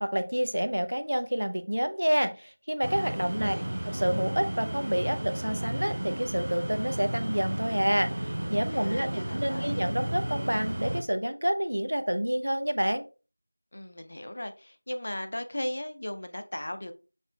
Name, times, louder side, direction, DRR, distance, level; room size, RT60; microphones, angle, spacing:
voice 1, 0.0-3.5 3.9-13.0, equal, 85° right, 10 dB, 0.6 m, -28 dB
sound 1, 2.8-11.0, right 1 dB, 35° right, 0.4 m, -33 dB
voice 2, 3.2-3.7 8.7-9.9 13.7-16.9, left 1 dB, 30° left, 8 dB, 0.4 m, -37 dB
6.4 x 2.9 x 2.3 m, 0.33 s
figure-of-eight pair, 180°, 0 cm